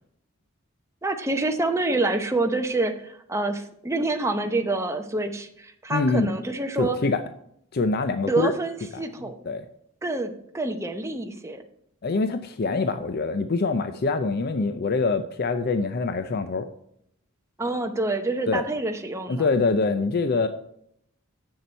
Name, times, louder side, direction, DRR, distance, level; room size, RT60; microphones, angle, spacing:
voice 1, 1.0-7.0 8.3-9.4 10.0-11.6 17.6-19.4, right 2 dB, 15° right, 5 dB, 0.8 m, -27 dB
voice 2, 5.9-6.3 6.8-7.2 7.7-8.5 8.9-9.0 9.5-9.7 12.0-16.7 18.5-18.6 19.3-20.5, left 3 dB, 50° left, 9 dB, 0.5 m, -24 dB
7.7 x 6.8 x 4.4 m, 0.71 s
head